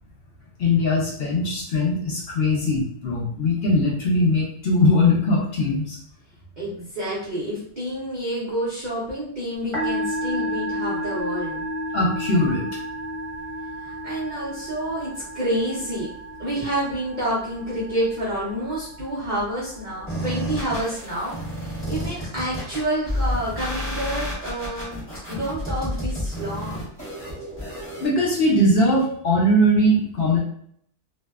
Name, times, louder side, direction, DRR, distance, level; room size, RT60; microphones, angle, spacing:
voice 1, 0.6-6.0 11.9-12.6 25.3-25.4 28.0-30.4, left 1 dB, 70° left, -3 dB, 0.6 m, -20 dB
voice 2, 6.6-11.7 13.7-16.1 16.4-25.0 25.3-26.9, right 1 dB, 55° right, -7 dB, 0.5 m, -29 dB
Musical instrument, 9.6-24.3, equal, 20° right, 1.1 m, -33 dB
sound 1, 20.1-28.1, equal, 10° left, 0.8 m, -30 dB
2.6 x 2.1 x 2.2 m, 0.66 s
omnidirectional pair, 1.6 m